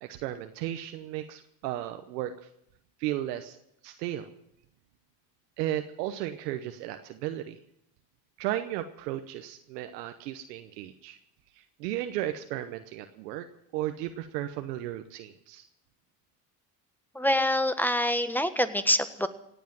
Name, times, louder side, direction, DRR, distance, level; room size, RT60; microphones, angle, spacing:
voice 1, 0.0-2.3 3.0-3.6 3.8-4.3 5.6-7.6 8.4-11.2 11.6-13.5 13.7-15.7, right 13 dB, 90° right, 7 dB, 1.0 m, -34 dB
voice 2, 17.1-19.3, left 1 dB, 5° left, 11 dB, 1.5 m, -25 dB
17.5 x 8.4 x 9.0 m, 0.76 s
hypercardioid pair, 70°, 47 cm